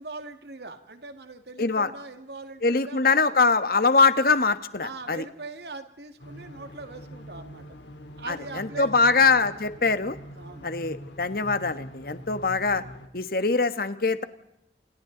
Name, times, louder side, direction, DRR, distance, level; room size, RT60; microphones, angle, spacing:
voice 1, 0.0-3.4 4.8-7.8 8.2-9.1 10.4-10.7, right 3 dB, 65° right, 8 dB, 2.1 m, -41 dB
voice 2, 1.6-1.9 2.6-5.2 8.3-10.2 10.6-12.8 13.1-14.2, left 4 dB, 55° left, 11 dB, 1.4 m, -23 dB
sound 1, 6.2-13.1, equal, 90° left, 3.5 m, -44 dB
29.0 x 28.0 x 4.0 m, 0.85 s
head